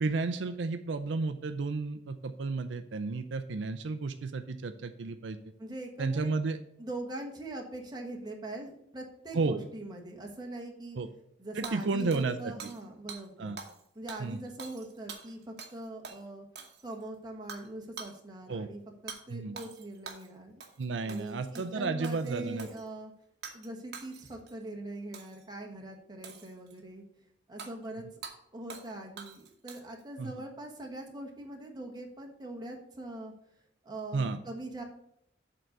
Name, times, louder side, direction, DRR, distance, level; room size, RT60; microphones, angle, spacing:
voice 1, 0.0-5.4 6.0-6.6 9.3-9.6 11.0-11.1 11.5-12.5 13.4-13.6 14.2-14.4 18.5-18.7 19.3-19.6 20.8-22.7 30.2-30.3 34.1-34.4, right 3 dB, 75° right, 9 dB, 0.5 m, -32 dB
voice 2, 5.6-6.3 6.8-11.0 11.4-13.5 13.9-16.4 16.8-20.6 21.0-23.1 23.5-27.0 27.5-28.0 28.5-33.3 33.8-34.8, right 2 dB, 20° right, 1 dB, 1.2 m, -42 dB
Hammer / Shatter, 11.6-12.8 13.1-13.2 13.6-13.8 14.1-15.8 16.0-16.2 16.6-17.0 17.5-17.7 18.0-18.2 19.1-19.2 19.6-20.3 20.6-20.8 21.1-21.7 22.0-22.8 23.4-23.7 23.9-24.5 25.1-25.4 26.2-26.8 27.6-27.7 28.2-28.4 28.7-28.9 29.2-30.0, right 5 dB, 60° right, 1.1 m, -45 dB
7.7 x 3.9 x 6.7 m, 0.73 s
head